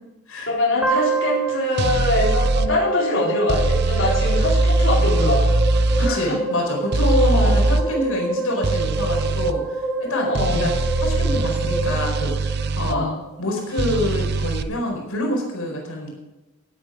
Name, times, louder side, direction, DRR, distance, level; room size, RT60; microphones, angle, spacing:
voice 1, 0.5-5.4 6.0-6.4 7.3-7.5 10.3-10.7 12.9-13.2, left 2 dB, 60° left, -6 dB, 4.1 m, -23 dB
sound 1, 0.8-13.0, right 3 dB, 5° right, 2.3 m, -27 dB
sound 2, 1.8-2.7 3.5-6.1 6.9-7.8 8.6-9.5 10.3-13.0 13.8-14.6, right 2 dB, 50° right, 0.7 m, -21 dB
voice 2, 6.0-13.0 13.4-16.1, left 1 dB, 75° left, 0 dB, 4.7 m, -26 dB
15.5 x 9.2 x 5.0 m, 1.1 s
head